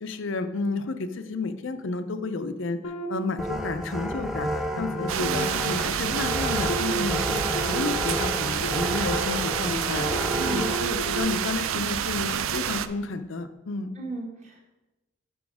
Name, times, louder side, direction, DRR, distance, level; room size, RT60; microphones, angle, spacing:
voice 1, 0.0-2.8 3.1-10.1 10.4-13.9, left 3 dB, 60° left, 10 dB, 0.5 m, -31 dB
sound 1, 2.8-4.1 4.6-11.2, right 1 dB, 90° left, 0.9 m, -35 dB
sound 2, 3.4-10.8, equal, ahead, 0.4 m, -31 dB
sound 3, 5.1-12.9, right 9 dB, 70° right, 0.4 m, -28 dB
voice 2, 10.3-10.8 13.9-14.6, right 2 dB, 35° right, 0 dB, 1.4 m, -35 dB
6.2 x 5.7 x 4.8 m, 1.0 s
head